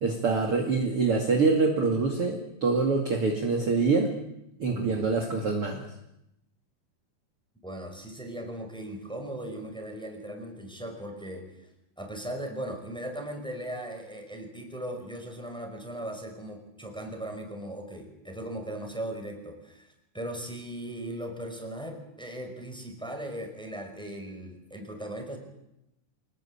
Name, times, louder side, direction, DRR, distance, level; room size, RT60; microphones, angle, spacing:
voice 1, 0.0-4.1 4.6-5.9, right 4 dB, 35° right, 2 dB, 2.7 m, -25 dB
voice 2, 4.7-5.2 7.6-11.7 12.0-25.4, right 1 dB, ahead, 3 dB, 5.0 m, -38 dB
26.5 x 20.0 x 8.8 m, 0.85 s
omnidirectional pair, 5.3 m